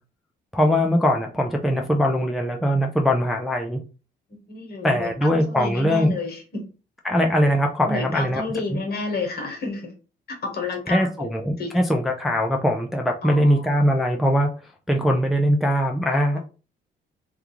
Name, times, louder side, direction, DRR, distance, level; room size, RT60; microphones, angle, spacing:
voice 1, 0.5-3.8 4.8-6.1 7.0-8.4 10.9-14.5 14.9-16.4, equal, ahead, 2 dB, 0.4 m, -21 dB
voice 2, 4.3-6.6 7.8-9.9 10.3-11.3 11.6-11.7 13.2-13.8 16.3-16.4, left 3 dB, 50° left, 3 dB, 1.1 m, -31 dB
2.3 x 2.3 x 3.0 m, 0.34 s
cardioid pair, 90°, 20 cm